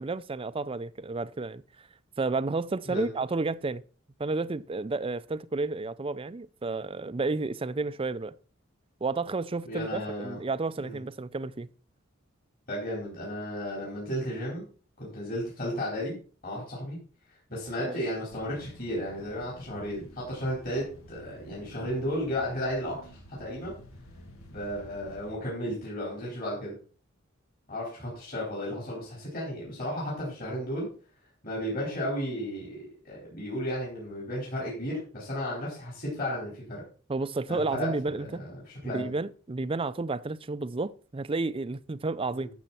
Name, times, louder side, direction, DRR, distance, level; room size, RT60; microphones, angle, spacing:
voice 1, 0.0-1.6 2.2-3.8 4.2-8.3 9.0-11.7 17.8-18.0 37.1-38.4 38.8-42.5, right 3 dB, 25° right, 0.4 m, -31 dB
voice 2, 9.7-10.4 10.8-11.0 12.7-14.6 15.0-16.1 16.4-17.0 17.5-23.1 23.4-23.7 24.5-26.7 27.7-30.9 31.4-36.8 37.5-39.1 42.3-42.5, equal, 45° left, 4.7 m, -34 dB
sound 1, 18.3-25.4, equal, 85° left, 2.1 m, -50 dB
13.0 x 7.2 x 4.4 m
head